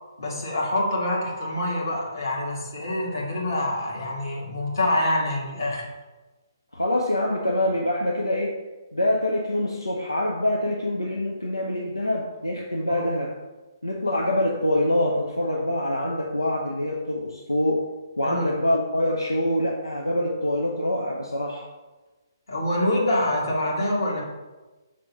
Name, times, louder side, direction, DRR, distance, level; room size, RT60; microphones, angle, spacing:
voice 1, 0.2-5.9 12.9-13.0 18.2-18.5 22.5-24.2, left 1 dB, 65° left, -3 dB, 1.9 m, -26 dB
voice 2, 6.7-8.6 8.9-13.4 13.8-17.9 18.2-21.6, left 1 dB, 85° left, -1 dB, 0.7 m, -25 dB
5.0 x 3.7 x 5.7 m, 1.2 s
figure-of-eight pair, 130°, 2 cm